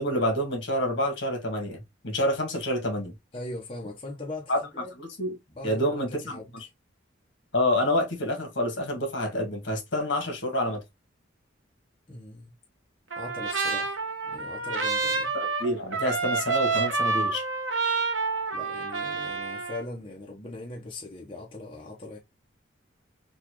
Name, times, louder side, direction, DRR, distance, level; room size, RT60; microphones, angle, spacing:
voice 1, 0.0-3.1 4.5-4.6 5.0-5.4 5.6-6.7 7.5-10.8 15.3-17.4, left 1 dB, 70° left, 1.5 m, -28 dB
voice 2, 3.3-4.9 5.5-6.5 12.1-12.5 13.2-14.0 14.2-15.3 18.5-22.2, left 2 dB, 30° left, 0.8 m, -40 dB
Trumpet, 13.1-19.8, right 4 dB, 80° right, 0.9 m, -28 dB
4.0 x 2.4 x 3.0 m
head